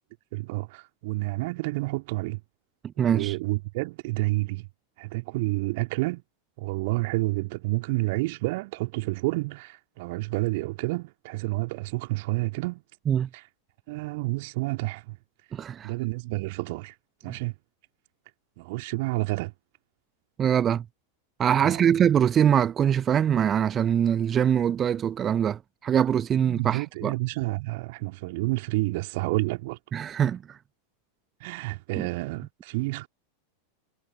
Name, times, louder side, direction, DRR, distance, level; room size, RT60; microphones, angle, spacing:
voice 1, 0.3-2.4 3.0-4.7 5.0-6.2 6.6-12.8 13.3-13.4 13.9-15.2 15.8-17.0 17.2-17.5 18.6-19.5 21.6-21.8 26.5-29.8 31.4-33.1, right 23 dB, 50° right, 2.2 m, -29 dB
voice 2, 3.0-3.4 13.1-13.3 15.5-15.9 17.3-17.4 20.4-20.9 21.4-27.1 29.9-30.6 32.0-32.1, right 9 dB, 25° right, 0.7 m, -23 dB
figure-of-eight pair, 90°, 0 cm